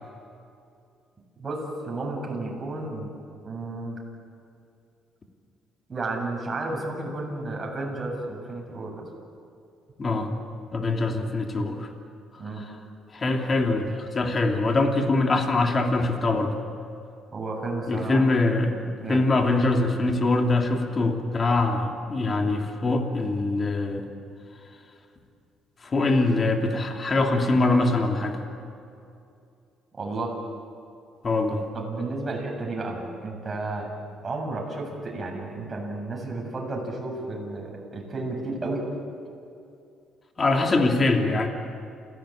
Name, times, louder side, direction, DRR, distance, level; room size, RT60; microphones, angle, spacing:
voice 1, 1.4-3.1 3.4-4.0 5.9-9.0 12.4-12.6 17.3-18.2 19.0-19.2 29.9-30.3 31.7-33.9 34.2-38.9, right 2 dB, 25° right, -1 dB, 7.7 m, -32 dB
voice 2, 10.0-10.4 10.7-11.9 13.1-16.5 17.9-24.0 25.8-28.4 31.2-31.6 40.4-41.5, left 2 dB, 30° left, 3 dB, 2.8 m, -23 dB
28.5 x 17.0 x 8.9 m, 2.5 s
cardioid pair, 110°, 0 cm